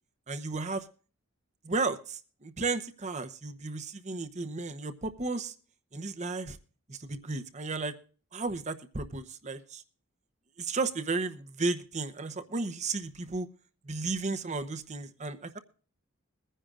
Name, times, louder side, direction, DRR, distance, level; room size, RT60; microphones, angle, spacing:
voice 1, 0.3-0.9 1.6-5.5 5.9-6.6 6.9-7.9 8.3-9.8 10.6-13.5 13.8-15.6, right 3 dB, 35° right, 10 dB, 0.9 m, -34 dB
22.5 x 10.0 x 2.5 m, 0.40 s
head